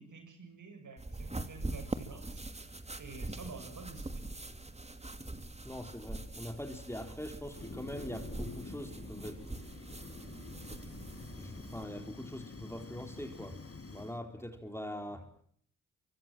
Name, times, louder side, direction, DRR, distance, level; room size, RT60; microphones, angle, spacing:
voice 1, 0.0-4.3 15.1-15.2, right 4 dB, 55° right, 7 dB, 7.6 m, -50 dB
sound 1, 1.0-11.8, right 2 dB, 20° right, 2.6 m, -43 dB
voice 2, 5.6-9.4 11.4-13.6 13.9-15.3, left 1 dB, 5° left, 6 dB, 4.2 m, -43 dB
Fire, 7.5-14.2, left 3 dB, 40° left, 5.3 m, -48 dB
24.5 x 24.0 x 7.7 m, 0.62 s
supercardioid pair, 45°, 36 cm